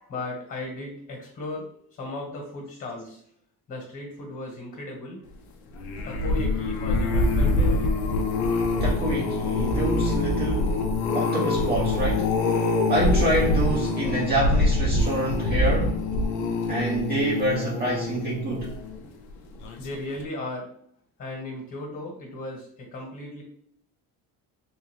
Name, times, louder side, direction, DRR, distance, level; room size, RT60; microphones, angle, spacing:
voice 1, 0.0-3.2 3.7-5.3 6.0-8.0 19.8-20.7 21.2-23.4, left 2 dB, 35° left, 1.4 m, -36 dB
sound 1, 5.7-19.1 19.6-19.9 20.2-20.3, left 2 dB, 80° left, 0.7 m, -25 dB
voice 2, 8.8-10.8 11.1-16.0 16.7-18.7, right 1 dB, 25° right, 0.6 m, -27 dB
3.5 x 2.7 x 3.2 m
cardioid pair, 120°, 37 cm